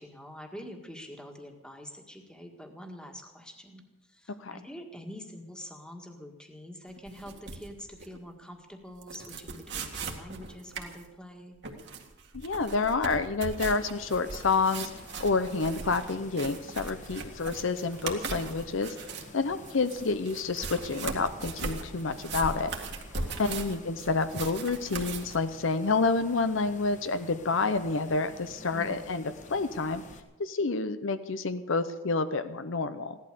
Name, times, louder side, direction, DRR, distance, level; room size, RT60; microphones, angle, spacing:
voice 1, 0.0-11.6 23.1-23.6 28.7-29.1, equal, 5° left, 3 dB, 1.7 m, -45 dB
sound 1, 6.9-8.2 8.4-8.5 9.0-11.0 11.6-19.3 19.6-25.4, right 4 dB, 55° right, 2.0 m, -39 dB
voice 2, 12.3-14.9 15.2-19.0 19.3-22.7 23.4-29.2 29.5-30.0 30.4-33.2, left 4 dB, 65° left, 11 dB, 0.7 m, -29 dB
sound 2, 13.9-30.2, left 2 dB, 35° left, 1.5 m, -50 dB
16.5 x 12.0 x 6.8 m, 1.1 s
head